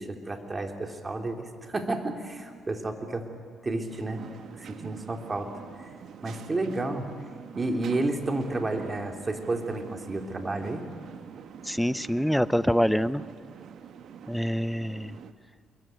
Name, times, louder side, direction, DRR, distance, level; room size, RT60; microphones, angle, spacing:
voice 1, 0.0-3.3 3.6-4.2 4.6-5.5 6.2-7.1 7.5-10.8, right 2 dB, 25° right, 4 dB, 3.2 m, -31 dB
sound 1, 3.9-15.3, right 8 dB, 70° right, 1.4 m, -45 dB
voice 2, 11.6-13.2 14.3-15.1, equal, 5° left, 16 dB, 0.7 m, -25 dB
27.5 x 22.5 x 9.2 m, 2.1 s
cardioid pair, 90°, 0 cm